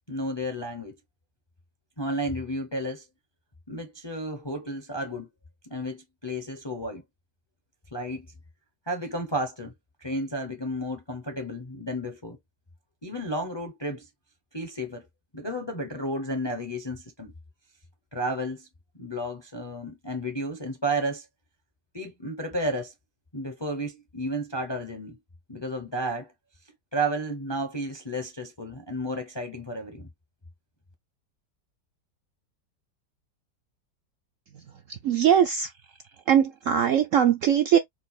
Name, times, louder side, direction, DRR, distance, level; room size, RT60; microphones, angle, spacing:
voice 1, 0.1-0.9 2.0-3.0 3.7-5.3 5.6-7.0 7.9-8.3 8.9-9.7 10.0-12.4 13.0-14.1 14.5-15.1 15.3-17.3 18.1-18.7 18.9-21.3 21.9-22.9 23.3-25.2 25.5-26.3 26.9-30.1, right 1 dB, 25° left, 0.5 m, -32 dB
voice 2, 34.5-35.7 36.3-37.8, right 9 dB, 70° right, 0.8 m, -21 dB
4.4 x 2.3 x 4.2 m
omnidirectional pair, 1.8 m